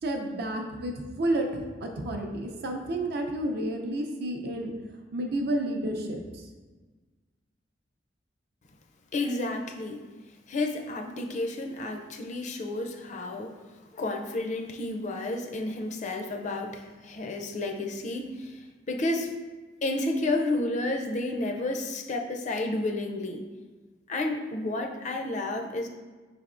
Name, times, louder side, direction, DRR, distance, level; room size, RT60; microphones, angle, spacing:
voice 1, 0.0-4.7 5.1-6.2, right 1 dB, 60° right, 3 dB, 0.5 m, -30 dB
voice 2, 9.1-10.0 10.5-13.6 13.9-19.3 19.8-23.4 24.1-25.9, left 2 dB, 40° left, 4 dB, 0.4 m, -31 dB
5.4 x 3.3 x 2.5 m, 1.3 s
head